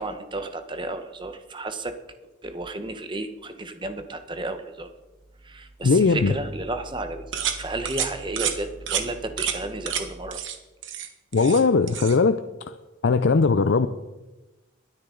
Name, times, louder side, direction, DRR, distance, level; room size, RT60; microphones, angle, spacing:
voice 1, 0.0-1.9 2.4-4.9 5.4-10.4, right 2 dB, 25° right, 8 dB, 1.0 m, -32 dB
voice 2, 5.8-6.3 11.3-12.4 12.6-12.7 13.0-13.9, left 4 dB, 65° left, 11 dB, 0.5 m, -19 dB
sound 1, 7.3-7.6 7.9-8.1 8.4-8.6 8.9-9.0 9.4-9.6 9.9-10.0 10.3-10.6 10.8-11.6 11.9-12.2, right 9 dB, 70° right, 1.3 m, -28 dB
21.5 x 9.9 x 3.9 m, 1.1 s
head